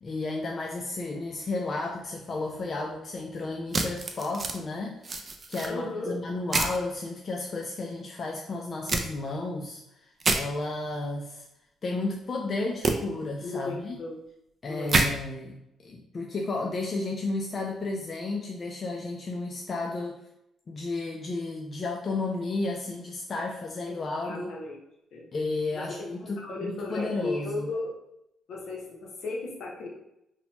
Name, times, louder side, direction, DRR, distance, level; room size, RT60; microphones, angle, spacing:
voice 1, 0.0-5.2 5.5-9.8 10.3-11.4 11.8-14.0 14.6-15.5 15.8-20.2 20.7-24.5 25.3-27.7, left 2 dB, 40° left, 0 dB, 0.3 m, -33 dB
sound 1, 3.7-4.6 5.0-5.7 6.5-6.8 8.9-9.0 10.2-10.4 12.8-12.9 14.9-15.1, right 3 dB, 35° right, 0.4 m, -26 dB
voice 2, 5.7-6.2 13.4-14.2 14.7-15.0 23.9-24.8 25.1-25.3 25.7-26.0 26.2-27.9 28.5-29.9, left 2 dB, 75° left, -2 dB, 0.8 m, -35 dB
2.9 x 2.1 x 2.9 m, 0.82 s
cardioid pair, 90°, 0 cm